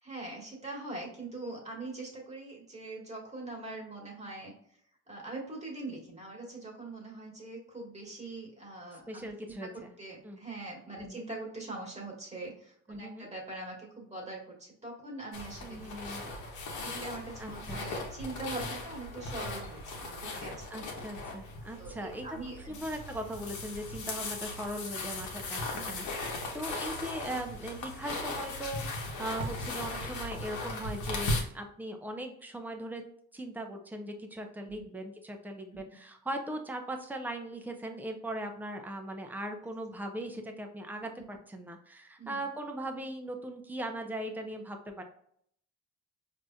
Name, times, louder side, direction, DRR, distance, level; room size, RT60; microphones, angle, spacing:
voice 1, 0.0-4.5 5.1-9.7 10.0-16.3 16.8-21.0 21.8-22.8 25.7-26.0 34.7-34.9 35.7-36.0 41.2-41.3 42.2-42.5, right 2 dB, 20° right, -2 dB, 1.5 m, -43 dB
voice 2, 9.1-9.9 10.2-10.4 11.0-11.2 12.9-13.3 15.6-16.2 17.4-17.8 20.7-22.3 22.7-33.0 33.3-45.0, right 1 dB, 5° right, 4 dB, 0.6 m, -39 dB
sound 1, 15.3-31.4, left 2 dB, 75° left, 1.0 m, -38 dB
4.8 x 2.8 x 2.3 m, 0.66 s
cardioid pair, 90°, 30 cm